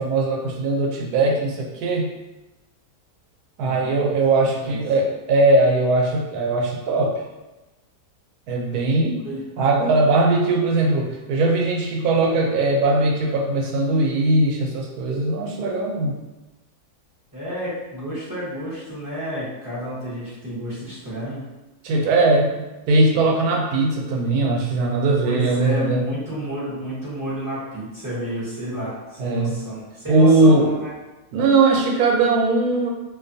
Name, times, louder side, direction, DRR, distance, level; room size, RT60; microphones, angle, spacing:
voice 1, 0.0-2.1 3.6-7.1 8.5-9.2 9.6-16.2 21.8-22.5 22.9-26.0 29.2-29.6 30.1-30.7 31.3-32.9, right 2 dB, 80° right, 0 dB, 1.1 m, -19 dB
voice 2, 3.6-3.9 4.6-4.8 9.2-9.4 17.3-21.4 25.2-30.9, equal, 20° right, -10 dB, 0.5 m, -30 dB
2.6 x 2.3 x 2.5 m, 1.1 s
omnidirectional pair, 1.6 m